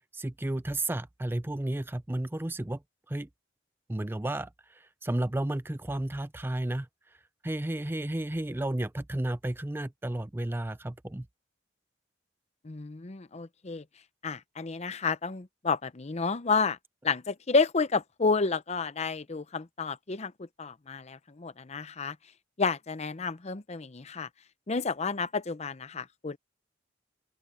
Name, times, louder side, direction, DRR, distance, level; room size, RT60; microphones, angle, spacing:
voice 1, 0.1-2.8 3.1-3.3 3.9-7.2 7.4-11.3, right 1 dB, 10° right, 0.5 m, -32 dB
voice 2, 12.6-13.8 14.2-16.8 17.0-22.2 22.6-24.3 24.7-26.4, left 4 dB, 35° left, 0.7 m, -30 dB
open air
head